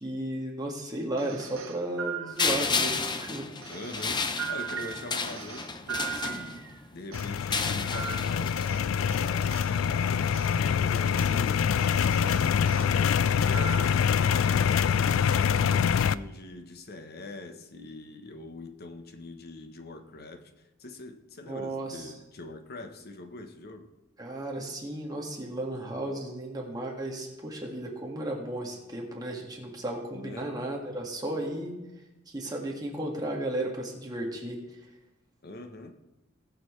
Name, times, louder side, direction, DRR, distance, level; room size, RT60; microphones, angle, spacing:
voice 1, 0.0-3.5 21.5-22.1 24.2-31.7 32.3-34.6, right 1 dB, 20° right, 1.8 m, -34 dB
sound 1, 1.2-2.9 3.6-6.8 7.1-9.7 10.3-10.5 11.2-11.4 11.8-12.9 13.4-14.1, right 7 dB, 85° right, 1.1 m, -39 dB
sound 2, 2.4-6.8 7.4-8.7, left 4 dB, 20° left, 0.6 m, -32 dB
voice 2, 3.7-6.6 6.9-11.7 12.0-20.5 20.8-23.9 30.1-30.5 35.4-35.9, left 2 dB, 50° left, 1.0 m, -43 dB
sound 3, 7.1-16.1, left 7 dB, 75° left, 0.3 m, -25 dB
19.5 x 7.1 x 3.2 m
head